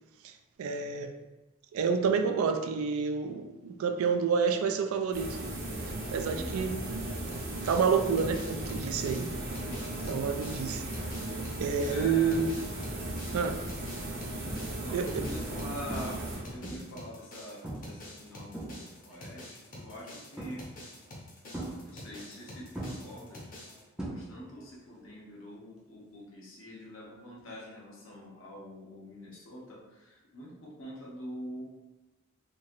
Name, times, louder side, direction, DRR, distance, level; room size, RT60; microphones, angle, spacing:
voice 1, 0.6-1.1 1.7-5.4 6.1-6.8 7.6-9.3 10.1-10.8 11.6-12.6 13.3-13.6 14.9-15.2, right 6 dB, 80° right, 6 dB, 0.3 m, -29 dB
sound 1, 5.1-16.8, right 1 dB, 45° right, 0.7 m, -37 dB
voice 2, 6.3-6.7 9.7-10.3 11.9-12.4 14.7-16.2 16.5-20.7 21.8-23.5 24.1-31.7, equal, 70° left, -4 dB, 0.8 m, -45 dB
sound 2, 7.3-23.8, left 1 dB, 40° left, 0.6 m, -48 dB
sound 3, 14.5-14.9 15.2-15.6 15.9-17.0 17.6-18.0 18.3-19.2 20.4-20.9 21.5-22.4 22.7-24.6 24.9-25.3 27.4-27.5, right 1 dB, 5° right, 0.4 m, -40 dB
3.0 x 2.7 x 2.5 m, 1.1 s
head